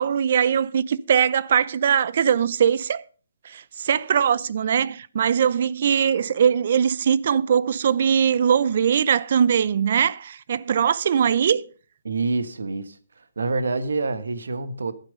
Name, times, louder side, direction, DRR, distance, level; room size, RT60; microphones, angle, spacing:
voice 1, 0.0-3.0 3.4-11.6, right 8 dB, 50° right, 0.6 m, -21 dB
voice 2, 12.0-13.0 13.4-14.9, right 3 dB, 85° right, 1.4 m, -26 dB
12.0 x 9.0 x 5.2 m
hypercardioid pair, 160°, 0 cm